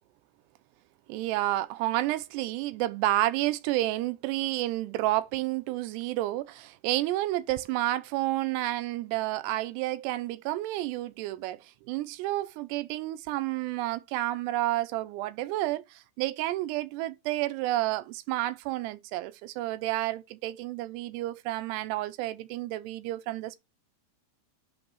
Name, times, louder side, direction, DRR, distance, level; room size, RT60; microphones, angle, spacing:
voice 1, 1.1-23.6, right 16 dB, 85° right, 2.7 m, -30 dB
8.5 x 3.4 x 4.0 m
omnidirectional pair, 4.9 m